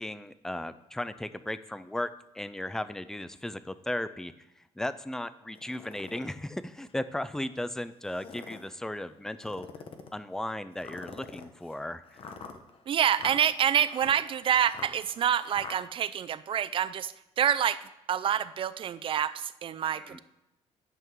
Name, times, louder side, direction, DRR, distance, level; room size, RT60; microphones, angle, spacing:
voice 1, 0.0-4.3 4.8-9.7 10.1-12.0 20.0-20.2, left 1 dB, 5° left, 14 dB, 0.4 m, -36 dB
sound 1, 5.6-6.3 6.9-7.0 8.0-8.7 9.4-10.2 10.8-15.8, left 5 dB, 55° left, 1.1 m, -45 dB
voice 2, 12.9-17.8 18.1-20.2, right 9 dB, 50° right, 15 dB, 0.5 m, -27 dB
11.0 x 5.9 x 4.6 m, 0.95 s
cardioid pair, 100°, 12 cm